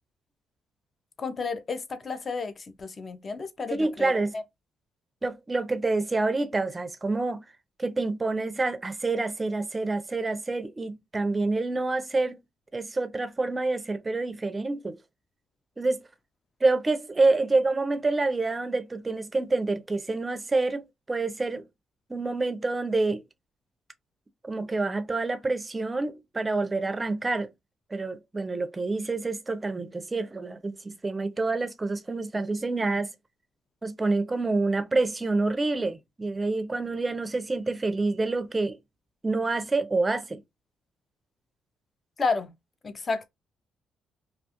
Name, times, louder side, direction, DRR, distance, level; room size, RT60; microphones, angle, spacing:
voice 1, 1.2-4.4 42.2-42.5 42.8-43.3, left 4 dB, 35° left, 0.5 m, -31 dB
voice 2, 3.7-4.3 5.2-7.4 7.8-12.4 12.7-15.0 15.8-16.0 16.6-21.6 22.1-23.2 24.4-27.5 27.9-33.1 33.8-38.8 39.2-40.4, right 3 dB, 20° right, 0.4 m, -27 dB
2.4 x 2.2 x 2.8 m
cardioid pair, 90°, 0 cm